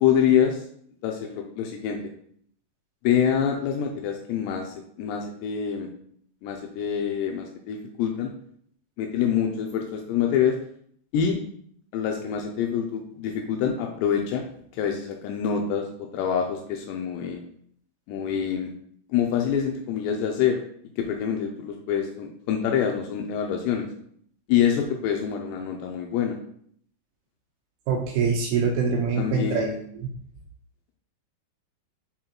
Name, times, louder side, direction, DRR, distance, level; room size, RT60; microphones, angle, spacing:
voice 1, 0.0-0.6 1.0-2.0 3.0-5.9 6.4-8.3 9.0-10.5 11.1-11.4 11.9-14.4 14.7-15.9 16.1-17.4 18.1-18.7 19.1-20.6 21.0-23.9 24.5-26.4 29.2-29.8, left 8 dB, 85° left, 2 dB, 2.8 m, -26 dB
voice 2, 27.9-29.7 30.0-30.1, right 5 dB, 80° right, 1 dB, 2.6 m, -24 dB
6.5 x 3.9 x 4.4 m, 0.64 s
omnidirectional pair, 5.0 m